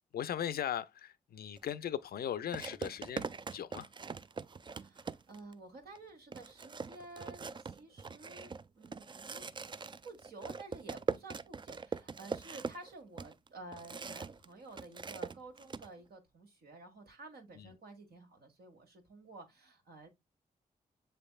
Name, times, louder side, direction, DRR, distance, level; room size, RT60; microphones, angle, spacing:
voice 1, 0.1-3.9 17.5-17.8, left 9 dB, 65° left, 0.5 m, -38 dB
sound 1, 1.6-1.7 2.5-5.5 6.0-6.1 6.3-14.5 14.7-15.9, right 5 dB, 30° right, 0.4 m, -42 dB
voice 2, 4.7-9.5 10.0-20.1, right 2 dB, 70° right, 1.6 m, -52 dB
6.9 x 3.3 x 2.2 m
supercardioid pair, 45°, 17 cm